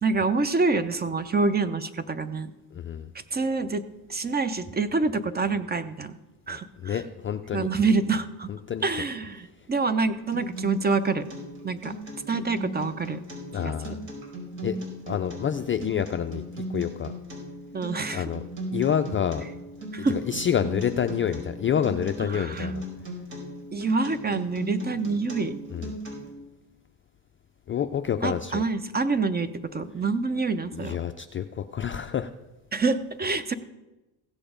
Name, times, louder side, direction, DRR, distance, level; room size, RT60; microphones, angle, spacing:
voice 1, 0.0-2.5 3.3-3.8 4.1-6.2 6.5-7.0 7.5-8.5 8.8-11.2 11.6-11.9 12.3-13.2 13.6-13.7 17.7-18.2 19.9-20.2 22.3-22.7 23.7-25.6 28.2-31.0 32.7-33.5, right 4 dB, 20° right, 13 dB, 0.7 m, -26 dB
voice 2, 2.7-3.1 6.5-7.7 8.5-8.8 13.5-14.1 14.6-14.8 15.1-16.4 16.7-17.1 18.1-18.4 18.7-19.4 20.0-22.8 25.7-25.9 27.7-28.6 30.7-32.3, left 8 dB, 25° left, 7 dB, 0.4 m, -28 dB
Acoustic guitar, 10.3-26.3, right 1 dB, 65° right, 4.8 m, -37 dB
16.0 x 6.9 x 5.1 m, 1.0 s
supercardioid pair, 90°, 50 cm